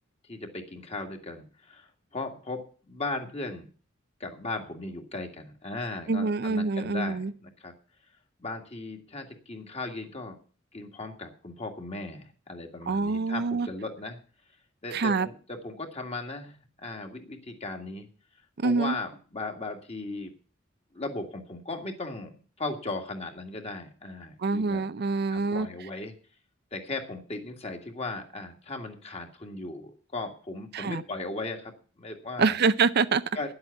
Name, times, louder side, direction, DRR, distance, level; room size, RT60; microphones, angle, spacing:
voice 1, 0.3-3.7 4.2-7.7 8.4-10.4 10.7-14.2 14.8-18.1 18.6-20.3 20.9-24.8 25.3-26.1 26.7-32.6 33.3-33.5, left 2 dB, 30° left, 2.0 m, -37 dB
voice 2, 6.1-7.3 12.9-13.7 14.9-15.3 18.6-19.0 24.4-25.7 30.7-31.0 32.4-33.2, right 4 dB, 55° right, 0.5 m, -25 dB
10.5 x 8.0 x 8.3 m
head